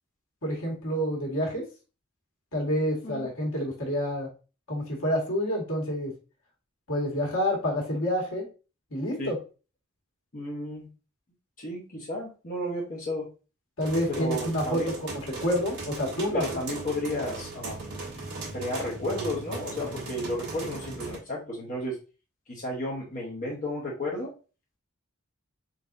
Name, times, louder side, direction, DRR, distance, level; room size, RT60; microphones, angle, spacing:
voice 1, 0.4-1.6 2.5-4.3 4.7-6.1 6.9-8.4 8.9-9.4 13.8-16.4, equal, 75° left, -2 dB, 1.7 m, -28 dB
voice 2, 10.3-10.9 11.6-13.3 14.1-14.9 16.3-18.0 18.5-22.0 22.5-24.3, left 1 dB, 40° left, -4 dB, 1.0 m, -33 dB
sound 1, 13.8-21.2, right 3 dB, 55° right, 1.6 m, -38 dB
4.1 x 4.0 x 2.5 m, 0.33 s
head